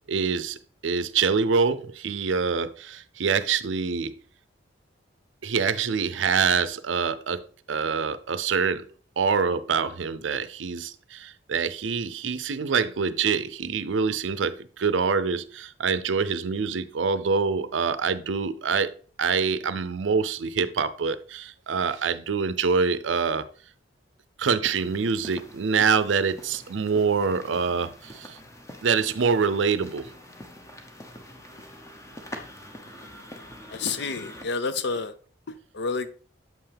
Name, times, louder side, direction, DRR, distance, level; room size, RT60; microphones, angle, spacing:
voice 1, 0.1-0.6 0.8-4.1 5.4-7.4 7.7-8.9 9.2-18.9 19.2-23.5 24.4-28.4 28.8-30.1, right 5 dB, 75° right, 0.5 m, -25 dB
sound 1, 24.6-34.4, left 1 dB, 15° left, 0.9 m, -44 dB
voice 2, 33.7-35.1 35.5-36.1, left 4 dB, 65° left, 0.6 m, -29 dB
7.5 x 5.6 x 3.4 m
head